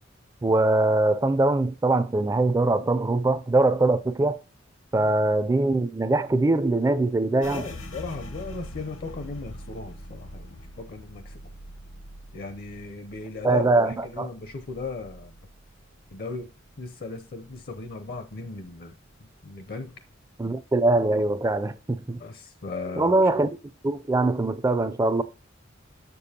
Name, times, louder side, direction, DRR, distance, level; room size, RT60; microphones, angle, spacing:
voice 1, 0.4-4.4 4.9-7.7 13.4-14.3 20.4-22.2 23.0-23.6 23.8-25.2, right 2 dB, 15° right, 0.3 m, -22 dB
sound 1, 7.4-16.8 17.1-18.3 18.7-19.1 19.6-20.2, left 1 dB, 75° left, 0.9 m, -44 dB
voice 2, 7.5-11.3 12.3-13.6 14.0-15.4 16.1-16.5 16.8-18.9 19.2-19.9 22.2-23.2, left 3 dB, 50° left, 0.6 m, -37 dB
6.9 x 6.8 x 2.8 m
head